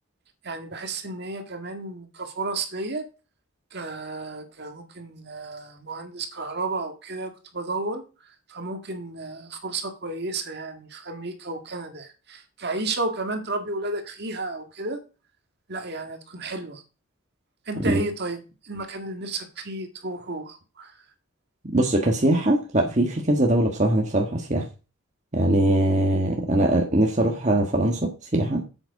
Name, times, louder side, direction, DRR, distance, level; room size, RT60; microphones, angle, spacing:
voice 1, 0.4-3.1 3.7-8.0 8.5-15.0 15.7-16.8 17.7-20.9, right 2 dB, 50° right, 1.7 m, -32 dB
voice 2, 21.7-24.6 25.3-28.6, right 1 dB, 35° right, 1.4 m, -22 dB
8.4 x 8.1 x 4.8 m
head